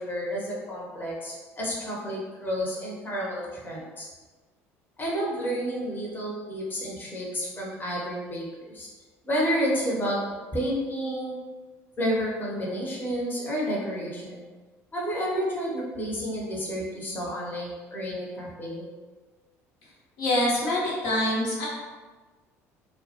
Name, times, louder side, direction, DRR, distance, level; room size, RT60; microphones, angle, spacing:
voice 1, 0.0-4.1 5.0-8.9 9.2-10.2 10.5-11.4 12.0-14.4 14.9-18.8, equal, 25° left, -4 dB, 0.7 m, -30 dB
voice 2, 20.2-21.7, left 1 dB, 70° left, -5 dB, 0.8 m, -25 dB
2.1 x 2.1 x 2.8 m, 1.3 s
hypercardioid pair, 60°, 8 cm